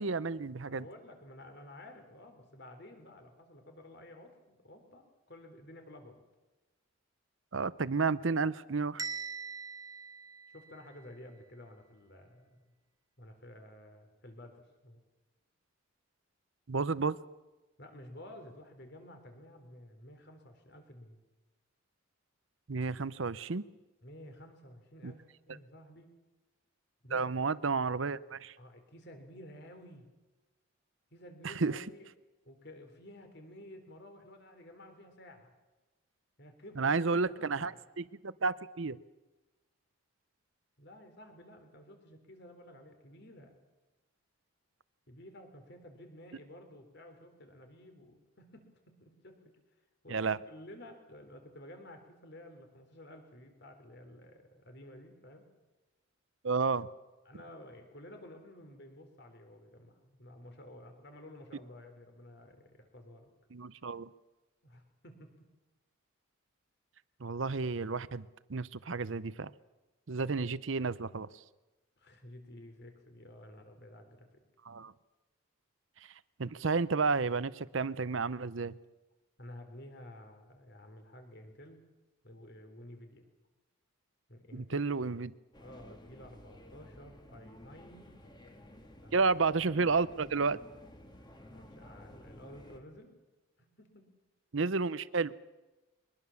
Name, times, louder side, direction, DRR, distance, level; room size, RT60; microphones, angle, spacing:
voice 1, 0.0-0.8 7.5-9.0 16.7-17.2 22.7-23.6 25.0-25.1 27.1-28.5 31.4-31.8 36.8-37.7 38.0-39.0 50.1-50.4 56.4-56.9 63.5-64.1 67.2-69.5 70.1-71.3 74.7-74.9 76.4-78.8 84.5-85.3 89.1-90.6 94.5-95.3, right 4 dB, 65° right, 17 dB, 0.7 m, -31 dB
voice 2, 0.7-6.3 10.5-12.6 13.2-15.0 17.8-21.2 24.0-26.1 27.0-27.3 28.6-30.0 31.1-32.1 32.5-35.5 36.4-37.9 40.8-43.6 45.1-49.4 50.0-55.5 57.3-63.3 64.6-65.5 72.0-74.3 79.4-81.8 82.2-83.3 84.3-84.9 85.6-88.2 89.0-89.3 91.2-93.1 93.6-94.1, left 1 dB, 50° left, 6 dB, 3.7 m, -52 dB
Bell, 9.0-11.0, right 5 dB, 15° right, 1.0 m, -42 dB
sound 1, 85.5-92.8, left 1 dB, 20° left, 1.9 m, -54 dB
23.0 x 20.5 x 7.2 m, 1.1 s
head